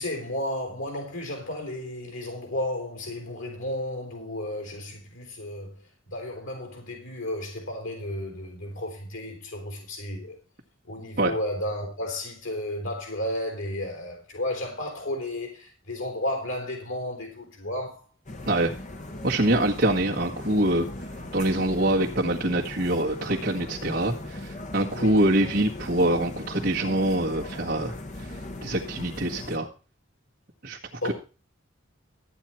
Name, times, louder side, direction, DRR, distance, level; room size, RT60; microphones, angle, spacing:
voice 1, 0.0-10.4 10.9-18.0 24.9-25.2 31.0-31.1, left 1 dB, 85° left, 4.1 m, -33 dB
sound 1, 18.3-29.6, left 1 dB, 40° left, 1.5 m, -38 dB
voice 2, 19.2-20.9 21.3-28.3 28.6-29.7 30.6-30.8 31.0-31.1, right 1 dB, 50° right, 1.6 m, -24 dB
13.5 x 9.2 x 4.4 m
head